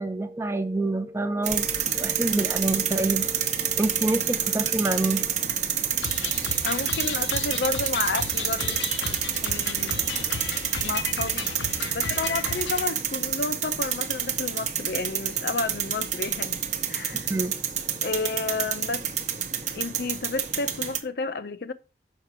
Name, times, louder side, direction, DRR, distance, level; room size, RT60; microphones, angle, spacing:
voice 1, 0.0-5.3 8.7-8.8 17.1-17.5, right 2 dB, 15° right, 0.6 m, -27 dB
sound 1, 1.4-21.0, right 8 dB, 40° right, 0.8 m, -28 dB
sound 2, 6.0-12.9, left 6 dB, 85° left, 0.8 m, -34 dB
voice 2, 6.6-8.8 9.4-10.0 10.8-11.5 11.9-16.6 16.9-17.3 18.0-19.1 19.7-21.7, left 4 dB, 60° left, 0.6 m, -31 dB
6.5 x 5.7 x 4.7 m
head